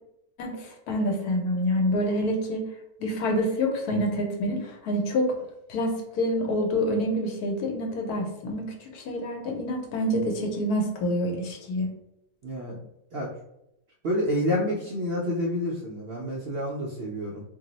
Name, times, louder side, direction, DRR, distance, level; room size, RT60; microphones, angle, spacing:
voice 1, 0.4-2.6 3.0-5.3 5.7-11.9, equal, 85° left, 2 dB, 1.2 m, -27 dB
voice 2, 12.4-12.8 13.1-13.3 14.0-17.4, equal, 65° right, -4 dB, 0.6 m, -28 dB
2.7 x 2.0 x 3.8 m, 0.81 s
omnidirectional pair, 1.6 m